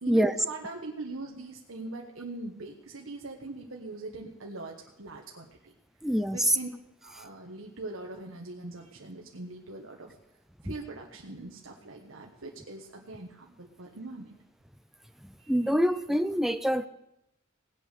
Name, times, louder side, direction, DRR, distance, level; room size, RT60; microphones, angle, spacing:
voice 1, 0.0-5.7 6.3-6.7 7.0-10.2 10.6-14.3 15.4-15.8, right 2 dB, 80° right, 0 dB, 1.4 m, -42 dB
voice 2, 6.0-6.6 15.5-16.9, equal, ahead, 10 dB, 0.6 m, -25 dB
18.0 x 8.2 x 6.7 m, 0.84 s
head